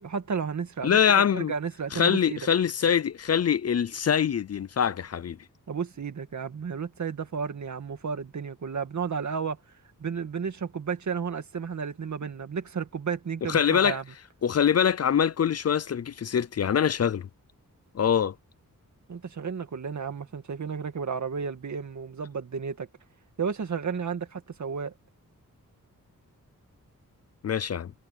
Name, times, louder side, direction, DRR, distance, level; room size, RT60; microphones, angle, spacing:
voice 1, 0.0-1.0 1.3-2.4 5.7-9.6 10.0-14.0 19.1-22.9 23.4-24.9, right 6 dB, 60° right, 2.1 m, -32 dB
voice 2, 0.8-1.5 1.9-5.4 13.5-14.0 14.4-17.3 17.9-18.3 27.4-27.9, left 8 dB, 50° left, 0.5 m, -24 dB
wide cardioid pair, 125°, 33 cm